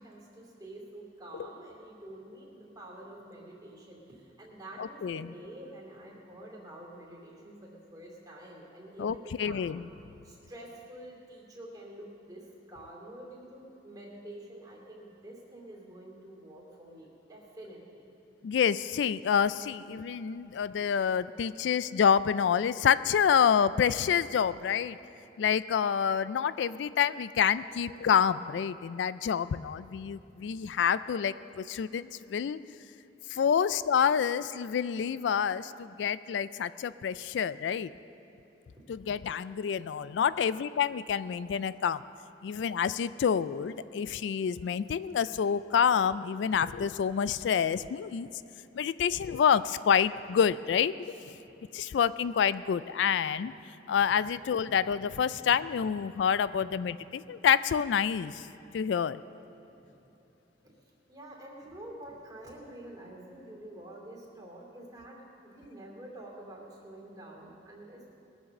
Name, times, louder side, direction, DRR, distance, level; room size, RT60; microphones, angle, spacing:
voice 1, 0.0-9.6 10.2-18.0 38.8-38.9 59.9-60.1 61.1-68.1, right 1 dB, 20° right, -2 dB, 2.7 m, -48 dB
voice 2, 4.8-5.3 9.0-9.8 18.4-25.0 25.4-32.6 33.3-37.9 38.9-42.0 42.4-48.3 48.7-51.1 51.7-53.5 53.9-58.5 58.7-59.2, left 7 dB, 80° left, 16 dB, 0.3 m, -28 dB
20.5 x 7.4 x 6.5 m, 3.0 s
head